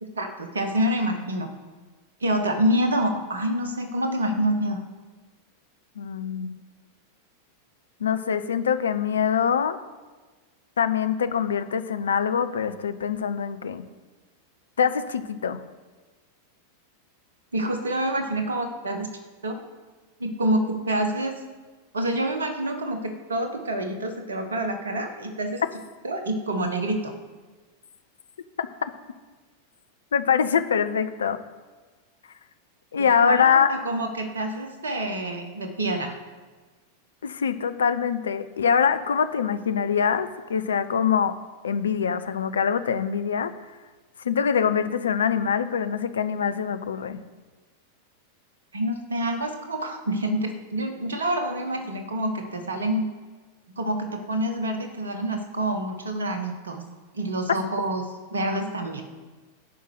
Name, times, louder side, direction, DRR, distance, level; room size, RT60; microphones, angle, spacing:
voice 1, 0.2-1.5 2.2-4.8 17.5-19.1 19.4-19.6 20.2-21.4 21.9-25.6 26.0-27.1 33.2-36.1 48.7-53.1 53.8-56.8 57.1-58.0 58.3-59.0, right 1 dB, 70° right, 5 dB, 1.5 m, -27 dB
voice 2, 6.0-6.6 8.0-9.8 10.8-13.8 14.8-15.6 28.6-28.7 30.1-31.4 32.9-33.7 37.2-41.4 41.6-43.5 44.2-47.2 57.5-57.6, left 7 dB, 70° left, 11 dB, 0.6 m, -24 dB
11.5 x 5.5 x 7.9 m, 1.3 s
figure-of-eight pair, 90°, 0 cm